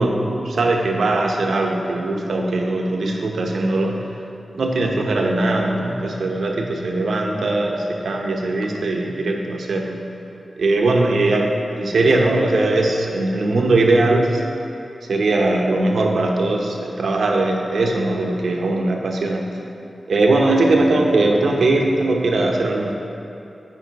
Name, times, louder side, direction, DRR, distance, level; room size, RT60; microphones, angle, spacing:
voice 1, 0.0-4.1 4.5-10.0 10.6-14.4 15.1-19.5 20.1-22.9, right 2 dB, 75° right, 1 dB, 0.8 m, -20 dB
9.1 x 5.4 x 4.0 m, 2.7 s
wide cardioid pair, 150°, 0 cm